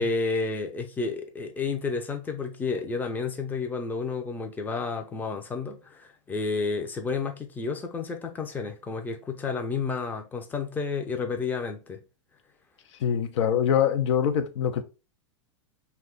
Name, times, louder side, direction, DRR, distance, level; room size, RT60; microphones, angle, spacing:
voice 1, 0.0-12.0, left 4 dB, 10° left, 0.5 m, -31 dB
voice 2, 13.0-14.8, left 8 dB, 70° left, 0.5 m, -24 dB
2.7 x 2.3 x 3.7 m
hypercardioid pair, 120°, 16 cm